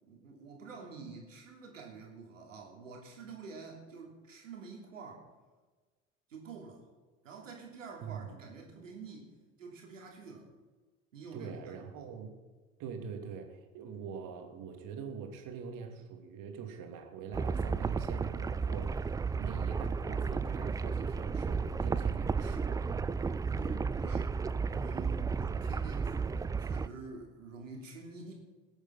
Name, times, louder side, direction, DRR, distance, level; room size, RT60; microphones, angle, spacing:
voice 1, 0.0-5.2 6.3-6.8 7.2-9.3 9.6-10.5 11.1-12.1 23.5-24.4 24.7-28.3, right 4 dB, 85° right, 0 dB, 3.0 m, -48 dB
voice 2, 8.0-8.4 11.3-12.4 12.8-19.1 19.3-22.8, right 7 dB, 55° right, 4 dB, 2.6 m, -44 dB
sound 1, 17.3-26.9, right 5 dB, 10° right, 0.3 m, -33 dB
20.5 x 8.1 x 5.7 m, 1.3 s
figure-of-eight pair, 65°, 37 cm